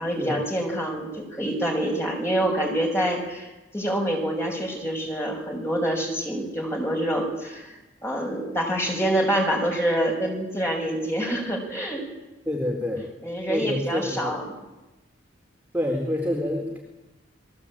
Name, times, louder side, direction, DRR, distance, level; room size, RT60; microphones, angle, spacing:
voice 1, 0.0-12.0 13.2-14.5, right 1 dB, 15° left, 0 dB, 6.8 m, -26 dB
voice 2, 12.5-13.0 13.5-14.4 15.7-16.8, left 1 dB, 10° right, -2 dB, 3.9 m, -27 dB
28.5 x 21.5 x 8.9 m, 1.1 s
head